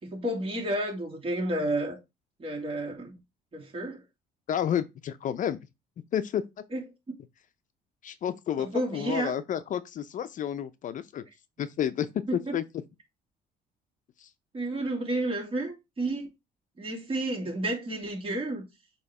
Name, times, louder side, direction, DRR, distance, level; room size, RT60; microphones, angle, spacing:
voice 1, 0.0-2.0 2.4-3.1 3.5-4.0 6.7-6.8 8.6-9.3 12.3-12.5 14.5-16.3 16.8-18.6, right 1 dB, 35° right, 2.7 m, -31 dB
voice 2, 4.5-5.6 6.1-6.4 8.0-11.2 11.6-12.1 12.5-12.6 14.2-14.3, left 9 dB, 50° left, 0.6 m, -30 dB
6.9 x 3.1 x 4.8 m
cardioid pair, 110°, 17 cm